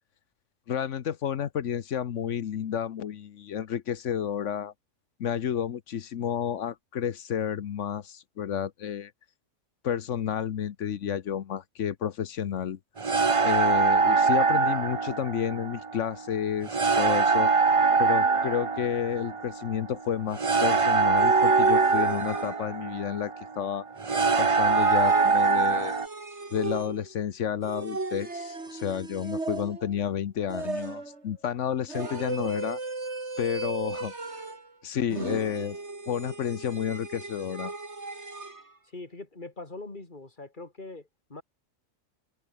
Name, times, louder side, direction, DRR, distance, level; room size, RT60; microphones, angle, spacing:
voice 1, 0.7-4.7 5.2-9.1 9.8-12.8 13.4-16.7 17.0-17.5 18.0-23.8 24.4-25.9 26.5-32.8 33.4-34.1 34.8-35.8 36.1-37.7, left 9 dB, 65° left, 1.2 m, -31 dB
sound 1, 13.0-26.1, right 4 dB, 30° right, 0.9 m, -24 dB
sound 2, 21.2-22.9 24.1-27.2 27.6-30.0 30.5-31.2 31.9-34.7 35.1-38.6, right 3 dB, 55° right, 3.6 m, -35 dB
voice 2, 38.8-41.4, left 2 dB, 35° left, 3.2 m, -42 dB
omnidirectional pair, 1.4 m